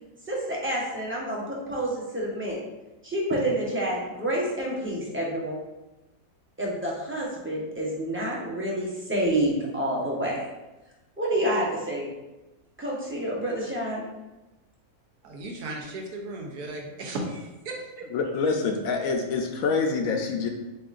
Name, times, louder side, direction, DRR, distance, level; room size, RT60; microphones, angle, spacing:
voice 1, 0.3-2.6 3.0-5.6 6.6-10.4 11.2-12.0 12.8-14.0, right 1 dB, 10° right, -4 dB, 0.6 m, -28 dB
voice 2, 15.2-18.1, right 2 dB, 85° right, 1 dB, 1.3 m, -36 dB
voice 3, 18.1-20.5, left 4 dB, 70° left, 3 dB, 1.0 m, -26 dB
7.3 x 2.4 x 2.5 m, 1.0 s
omnidirectional pair, 1.6 m